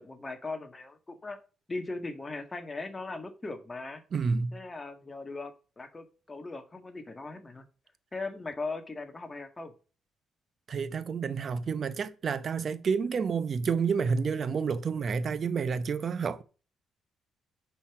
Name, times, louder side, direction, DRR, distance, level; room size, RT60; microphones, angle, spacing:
voice 1, 0.0-1.4 1.7-4.0 4.5-7.6 8.1-9.7, left 3 dB, 25° left, 1.8 m, -39 dB
voice 2, 4.1-4.6 10.7-16.4, right 5 dB, 50° right, 0.7 m, -29 dB
6.8 x 5.6 x 7.2 m
cardioid pair, 90°, 0 cm